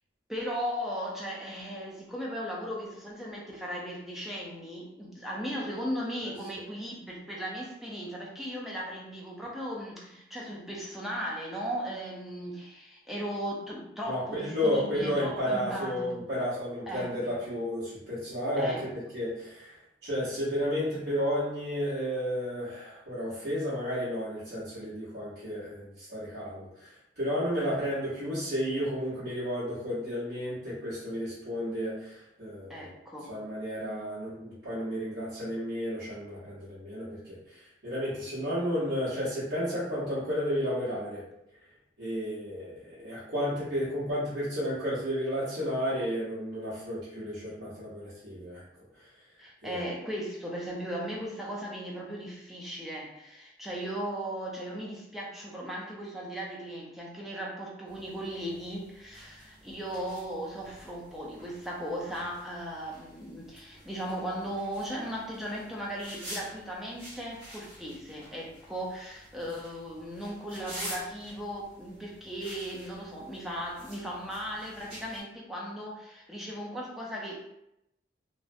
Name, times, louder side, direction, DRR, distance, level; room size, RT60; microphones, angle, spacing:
voice 1, 0.3-16.2 16.9-17.2 18.6-18.9 32.7-33.3 49.4-77.5, equal, ahead, -4 dB, 0.4 m, -37 dB
voice 2, 14.1-18.9 19.1-19.8 20.0-32.9 33.3-41.2 42.0-48.6 49.6-49.8, equal, 65° right, -12 dB, 1.0 m, -32 dB
sound 1, 57.9-75.2, equal, 30° right, 1.1 m, -48 dB
2.4 x 2.0 x 2.5 m, 0.82 s
head